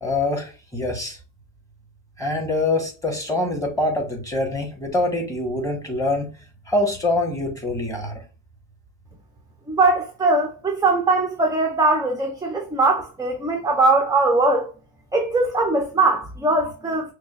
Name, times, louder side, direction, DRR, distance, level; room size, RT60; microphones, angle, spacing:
voice 1, 0.0-1.2 2.2-6.3 6.7-8.2, left 2 dB, 5° left, 1.4 m, -24 dB
voice 2, 9.7-14.7 15.1-17.1, right 2 dB, 10° right, 0.6 m, -20 dB
6.0 x 2.3 x 2.4 m
cardioid pair, 105°, 45 cm